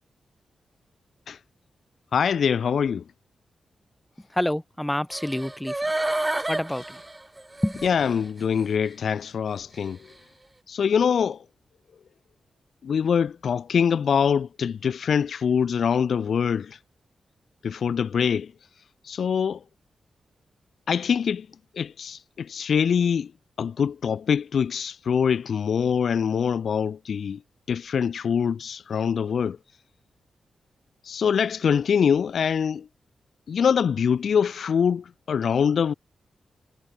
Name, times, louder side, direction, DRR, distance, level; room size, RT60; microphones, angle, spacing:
voice 1, 2.1-3.0 7.8-10.0 10.7-11.4 12.8-16.8 17.6-18.5 19.0-19.6 20.9-21.5 21.7-23.3 23.6-27.4 27.7-29.6 31.0-32.9 33.5-35.9, left 7 dB, 65° left, 0.4 m, -24 dB
voice 2, 4.3-5.9 6.5-7.0 7.6-7.9, left 1 dB, 5° left, 1.3 m, -27 dB
sound 1, 5.1-8.2 8.6-8.7, right 2 dB, 15° right, 2.8 m, -29 dB
wide cardioid pair, 135°, 0 cm